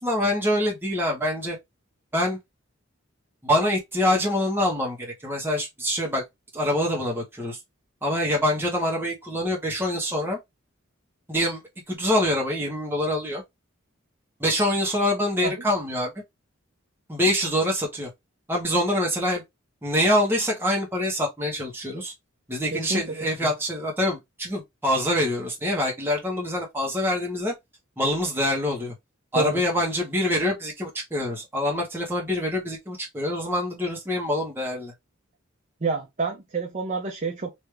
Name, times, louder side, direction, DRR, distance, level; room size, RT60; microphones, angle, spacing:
voice 1, 0.0-1.6 2.1-2.4 3.4-6.2 6.5-7.6 8.0-10.4 11.3-11.6 11.9-13.4 14.4-16.1 17.1-18.1 18.5-19.4 19.8-22.1 22.5-27.5 28.0-28.9 29.3-34.9, left 1 dB, 10° right, 1.1 m, -25 dB
voice 2, 22.7-23.1 23.4-23.5 29.3-29.6 35.8-37.5, right 3 dB, 40° right, 0.7 m, -28 dB
3.4 x 2.6 x 3.1 m
head